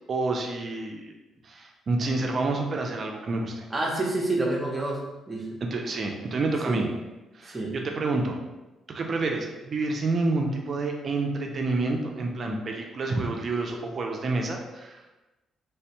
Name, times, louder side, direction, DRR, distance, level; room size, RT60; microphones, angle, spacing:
voice 1, 0.1-1.1 1.4-3.7 5.6-6.9 7.3-8.4 8.9-15.0, right 3 dB, 45° right, 2 dB, 0.4 m, -28 dB
voice 2, 3.7-5.0 5.3-5.4 6.6-6.8 7.5-7.7, right 2 dB, 20° right, -2 dB, 0.8 m, -27 dB
3.3 x 2.1 x 2.9 m, 1.1 s
cardioid pair, 90°, 0 cm